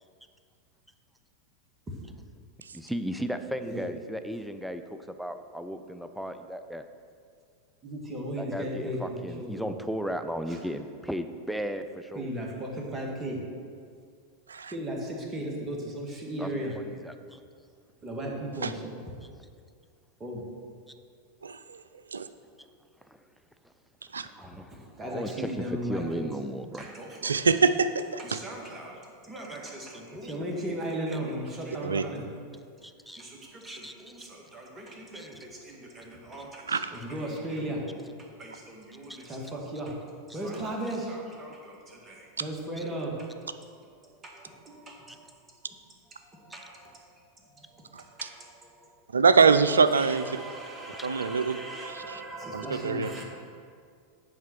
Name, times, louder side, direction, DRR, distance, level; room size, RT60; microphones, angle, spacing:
voice 1, 2.7-6.8 8.4-12.3 16.4-17.4 23.1-23.2 24.2-26.9 32.8-33.2 33.6-33.9 35.1-35.3 39.1-39.2 45.1-45.2 46.5-46.6 50.9-51.4, equal, ahead, 8 dB, 0.4 m, -36 dB
voice 2, 7.8-9.8 10.5-10.6 12.2-13.4 14.7-16.7 18.0-18.9 20.2-20.5 24.3-26.3 26.7-27.5 28.2-32.4 33.2-38.1 38.4-40.0 40.3-43.3 44.0-45.4 45.6-45.8 46.2-49.0 49.9-53.2, right 1 dB, 20° right, -1 dB, 1.7 m, -37 dB
voice 3, 27.2-28.0 31.8-32.0 36.7-36.9 49.1-50.2 51.0-51.6 52.5-53.1, right 5 dB, 85° right, 12 dB, 0.3 m, -23 dB
8.7 x 3.7 x 6.0 m, 2.2 s
figure-of-eight pair, 90°, 0 cm